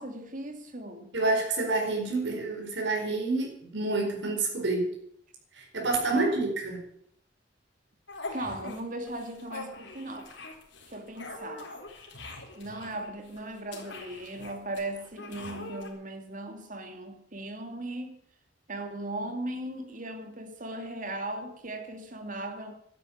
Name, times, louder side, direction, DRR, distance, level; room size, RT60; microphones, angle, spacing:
voice 1, 0.0-1.1 6.1-6.6 8.3-10.3 10.9-11.7 12.6-18.2 18.7-22.7, right 1 dB, 45° right, 2.6 m, -38 dB
voice 2, 1.1-4.9 5.6-6.8, right 2 dB, 75° right, 4.6 m, -28 dB
sound 1, 8.1-8.8 9.1-15.9, left 2 dB, 75° left, 4.1 m, -43 dB
12.0 x 10.5 x 9.4 m
head